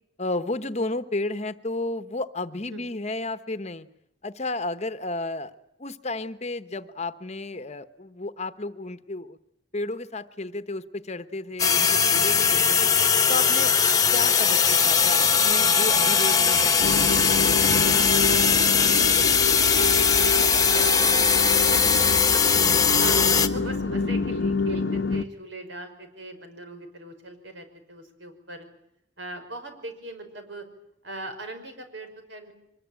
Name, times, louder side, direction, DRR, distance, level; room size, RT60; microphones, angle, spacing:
voice 1, 0.2-3.9 4.2-5.5 5.8-9.4 9.7-12.9 13.3-13.7 14.1-18.0 22.5-22.8 23.2-23.5, left 2 dB, 35° left, 12 dB, 1.1 m, -33 dB
sound 1, 11.6-23.5, left 6 dB, 20° left, 1.3 m, -20 dB
sound 2, 16.8-25.2, left 3 dB, 70° left, 0.9 m, -28 dB
voice 2, 18.6-21.3 21.7-28.7 29.2-30.7 31.0-32.5, right 2 dB, 75° right, 7 dB, 5.6 m, -40 dB
24.5 x 21.0 x 9.0 m, 0.78 s
head